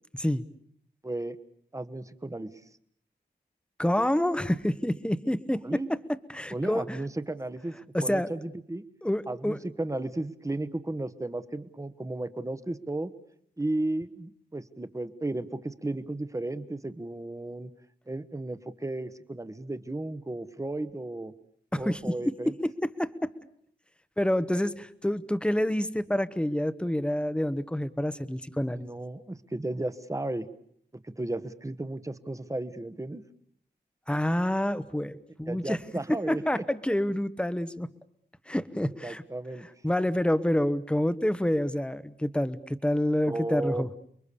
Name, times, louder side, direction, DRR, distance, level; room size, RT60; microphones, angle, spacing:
voice 1, 0.1-0.5 3.8-5.8 6.3-7.0 7.9-8.3 9.0-9.6 21.7-22.1 22.6-23.3 24.2-28.9 34.1-35.8 36.1-37.9 38.5-39.2 39.8-43.9, left 1 dB, 5° left, 14 dB, 1.0 m, -28 dB
voice 2, 1.0-1.4 1.7-2.5 5.6-5.9 6.5-7.7 8.0-8.8 9.3-13.1 13.6-17.7 18.1-21.3 21.8-22.5 28.7-30.5 31.0-33.2 35.5-36.6 39.0-39.7 43.2-44.0, right 2 dB, 15° right, 12 dB, 1.1 m, -34 dB
30.0 x 22.5 x 7.0 m, 0.67 s
wide cardioid pair, 120°, 18 cm